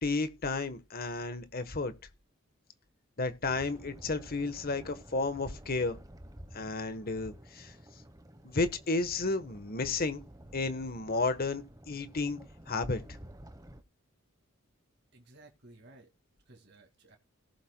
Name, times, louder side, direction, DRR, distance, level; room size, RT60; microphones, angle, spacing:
voice 1, 0.0-1.9 3.2-6.0 6.5-7.7 8.4-10.2 10.5-12.4 12.7-13.0, left 3 dB, 45° left, 1.2 m, -32 dB
sound 1, 3.5-13.8, equal, 15° right, 1.1 m, -52 dB
voice 2, 15.1-16.1 16.5-17.2, right 2 dB, 50° right, 2.1 m, -56 dB
18.0 x 7.4 x 2.2 m
head